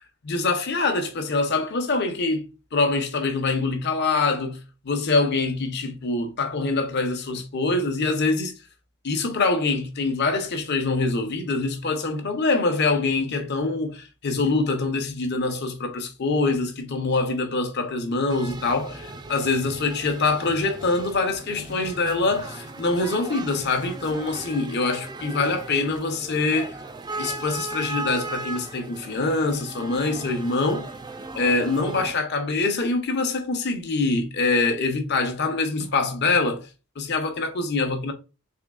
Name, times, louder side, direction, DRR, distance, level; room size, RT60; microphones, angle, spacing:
voice 1, 0.3-8.5 9.0-26.7 27.2-30.9 31.3-36.6 37.0-38.1, left 3 dB, 55° left, 0.8 m, -24 dB
sound 1, 18.3-32.1, right 2 dB, 20° right, 0.4 m, -37 dB
3.6 x 3.5 x 2.3 m
head